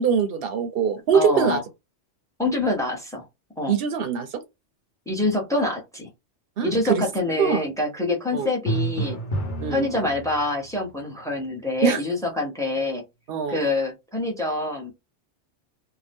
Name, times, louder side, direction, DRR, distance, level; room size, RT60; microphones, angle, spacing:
voice 1, 0.0-1.6 3.7-4.4 6.6-7.0 7.4-7.6 8.3-8.5 9.6-9.9 11.8-12.0 13.3-13.6, right 6 dB, 60° right, 0.7 m, -23 dB
voice 2, 1.1-1.6 2.4-3.3 3.6-3.8 5.1-6.1 6.6-9.2 9.7-13.0 13.5-14.9, left 2 dB, 5° left, 0.6 m, -26 dB
Drum, 8.7-10.7, right 2 dB, 80° left, 1.1 m, -29 dB
2.7 x 2.1 x 3.4 m
omnidirectional pair, 1.2 m